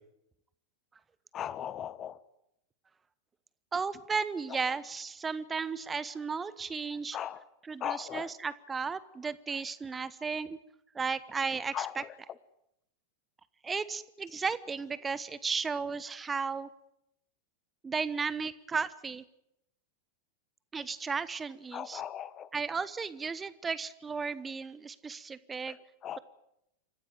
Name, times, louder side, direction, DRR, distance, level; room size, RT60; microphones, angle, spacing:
voice 1, 1.3-2.2 7.1-7.4 7.8-8.3 11.7-12.1 21.7-22.5 26.0-26.2, left 10 dB, 30° left, 18 dB, 1.1 m, -37 dB
voice 2, 3.7-7.2 7.6-10.6 10.9-12.0 13.6-16.7 17.8-19.2 20.7-22.0 22.5-25.8, right 5 dB, 15° right, 17 dB, 1.1 m, -34 dB
27.5 x 15.0 x 9.1 m, 0.80 s
figure-of-eight pair, 90°, 0 cm